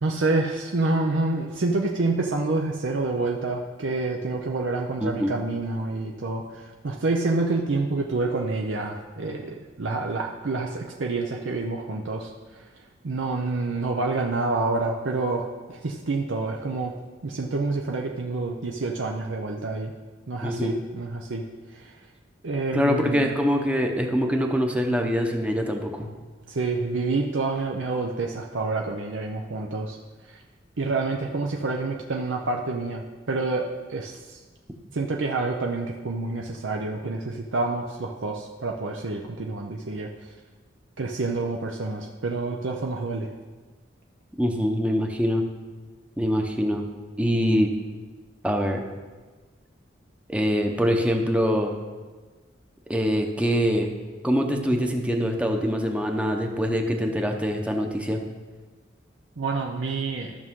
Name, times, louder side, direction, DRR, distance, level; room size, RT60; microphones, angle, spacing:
voice 1, 0.0-12.7 13.0-16.9 17.2-19.9 20.3-22.0 22.4-23.3 26.5-30.0 30.3-30.4 30.8-34.4 34.9-40.3 41.0-43.3 59.4-60.4, right 3 dB, 75° right, 1 dB, 0.7 m, -28 dB
voice 2, 5.0-5.3 20.4-20.8 22.7-26.1 44.4-45.4 46.2-46.8 47.2-47.7 48.4-48.8 50.3-51.8 52.9-53.9 54.2-58.2, equal, 5° right, 3 dB, 0.8 m, -24 dB
13.5 x 6.1 x 3.7 m, 1.3 s
head